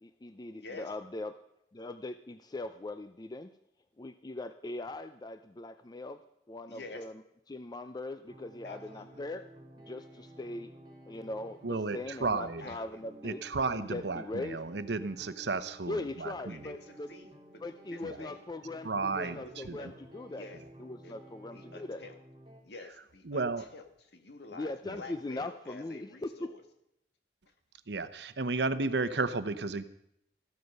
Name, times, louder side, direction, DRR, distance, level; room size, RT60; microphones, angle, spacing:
voice 1, 0.0-1.4 1.7-3.5 4.0-6.2 6.5-7.1 7.5-9.5 9.9-10.7 11.1-13.4 13.7-14.6 15.9-17.1 17.6-20.5 20.8-22.0 24.6-26.5, left 2 dB, 25° left, 10 dB, 0.5 m, -40 dB
voice 2, 0.5-0.9 6.7-7.1 8.6-9.2 12.6-13.0 16.2-18.4 19.2-19.9 20.3-20.6 21.0-22.2 22.6-23.8 24.1-26.6, left 2 dB, 65° left, 6 dB, 1.8 m, -49 dB
sound 1, 8.2-22.6, right 1 dB, 30° right, 3.7 m, -54 dB
voice 3, 11.6-12.8 13.2-16.7 18.0-18.2 18.8-19.8 23.2-23.7 24.8-25.0 27.9-29.8, right 3 dB, 70° right, 12 dB, 0.9 m, -33 dB
14.0 x 12.5 x 5.5 m, 0.77 s
head